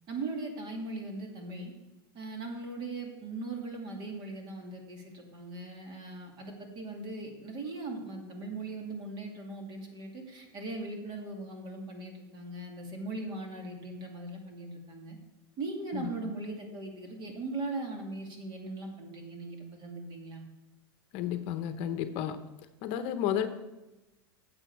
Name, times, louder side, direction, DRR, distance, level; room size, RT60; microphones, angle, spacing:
voice 1, 0.1-1.7 2.1-15.2 15.6-20.4, right 2 dB, 35° right, 2 dB, 2.5 m, -39 dB
voice 2, 15.9-16.3 21.1-22.4 22.8-23.5, left 10 dB, 50° left, 9 dB, 0.8 m, -32 dB
10.5 x 7.8 x 4.6 m, 1.0 s
supercardioid pair, 125°, 13 cm